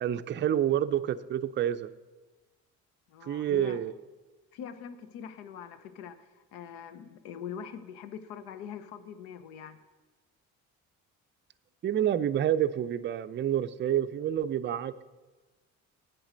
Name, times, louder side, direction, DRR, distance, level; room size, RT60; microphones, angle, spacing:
voice 1, 0.0-1.9 3.2-3.9 11.8-15.0, right 10 dB, 30° right, 12 dB, 0.4 m, -28 dB
voice 2, 3.1-3.8 4.5-9.8, left 8 dB, 80° left, 11 dB, 0.8 m, -43 dB
8.6 x 6.2 x 6.5 m, 1.2 s
hypercardioid pair, 55°, 42 cm